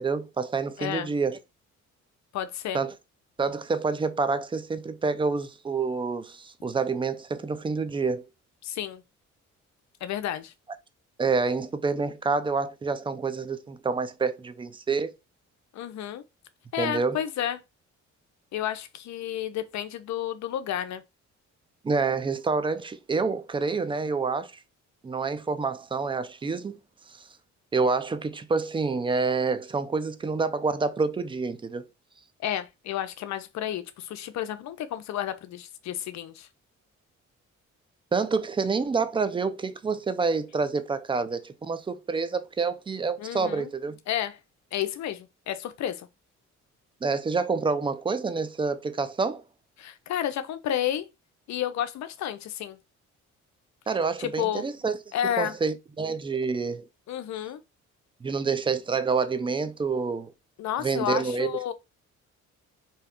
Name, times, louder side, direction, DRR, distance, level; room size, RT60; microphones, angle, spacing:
voice 1, 0.0-1.4 2.7-2.9 3.4-8.2 11.2-15.1 16.8-17.2 21.8-24.5 25.0-26.8 27.7-31.8 38.1-44.0 47.0-49.4 53.9-55.0 55.4-56.8 58.2-60.3 60.8-61.7, right 4 dB, 20° right, 0.3 m, -27 dB
voice 2, 0.8-1.1 2.3-2.8 8.6-9.0 10.0-10.5 15.7-16.2 16.7-17.6 18.5-21.0 32.4-36.5 43.2-43.7 44.1-44.4 44.7-46.1 49.8-51.1 51.5-52.8 54.2-54.7 55.1-55.6 57.1-57.6 60.6-61.7, left 11 dB, 65° left, 0.5 m, -31 dB
2.7 x 2.3 x 3.5 m
cardioid pair, 90°, 30 cm